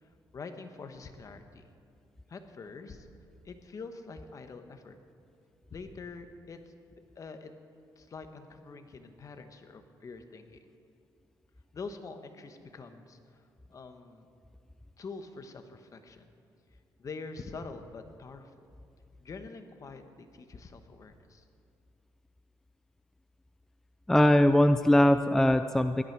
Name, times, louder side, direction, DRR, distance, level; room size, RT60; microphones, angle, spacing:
voice 1, 0.3-1.7 2.3-3.1 3.4-5.0 5.7-6.6 7.2-7.5 8.0-10.6 11.7-13.4 13.7-14.3 15.0-16.3 17.0-18.5 19.2-21.4, left 4 dB, 40° left, 7 dB, 1.2 m, -45 dB
voice 2, 24.1-26.0, left 1 dB, 5° left, 10 dB, 0.3 m, -21 dB
17.0 x 12.0 x 4.7 m, 2.3 s
cardioid pair, 100°, 8 cm